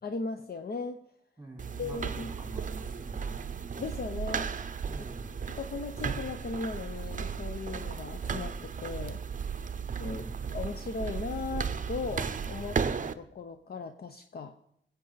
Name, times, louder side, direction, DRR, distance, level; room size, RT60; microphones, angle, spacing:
voice 1, 0.0-1.0 1.8-2.3 3.8-4.7 5.5-9.2 10.0-14.5, left 4 dB, 55° left, 7 dB, 0.7 m, -37 dB
voice 2, 1.4-3.4 4.8-5.3 10.0-10.4, right 1 dB, 10° right, -1 dB, 3.8 m, -46 dB
sound 1, 1.6-13.1, right 6 dB, 40° right, 0.6 m, -35 dB
21.0 x 8.1 x 4.0 m, 0.72 s
wide cardioid pair, 110°, 20 cm